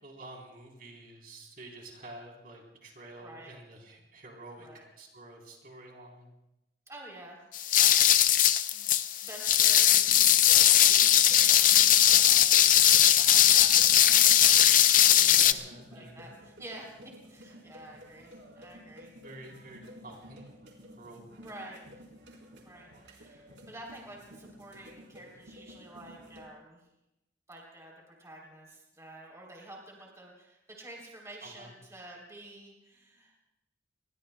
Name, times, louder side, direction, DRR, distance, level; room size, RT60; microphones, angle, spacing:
voice 1, 0.0-6.3 15.1-16.2 19.1-20.4 21.0-21.2 31.4-31.7, right 2 dB, 50° right, -1 dB, 3.8 m, -49 dB
voice 2, 3.2-3.5 4.6-4.8 6.9-7.4 7.7-8.9 9.2-10.2 10.5-12.8 13.0-17.0 17.3-19.1 21.4-21.8 22.6-26.8 27.5-33.4, right 1 dB, 15° right, -1 dB, 3.5 m, -49 dB
sound 1, 7.5-15.5, left 11 dB, 45° left, 0.5 m, -20 dB
sound 2, 10.0-26.5, equal, 75° right, 4.1 m, -52 dB
28.5 x 22.0 x 2.3 m, 0.91 s
head